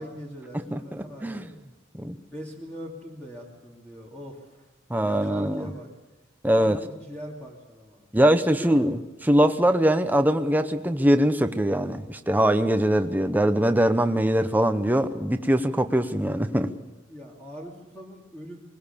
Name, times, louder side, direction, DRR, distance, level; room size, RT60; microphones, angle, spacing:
voice 1, 0.0-1.5 2.3-4.7 5.0-5.9 6.6-8.0 8.5-8.9 17.1-18.6, equal, 10° left, -3 dB, 2.5 m, -41 dB
voice 2, 4.9-5.7 6.4-6.8 8.1-9.0 9.3-16.7, right 1 dB, 10° right, 8 dB, 0.8 m, -22 dB
21.5 x 19.5 x 6.9 m, 1.0 s
head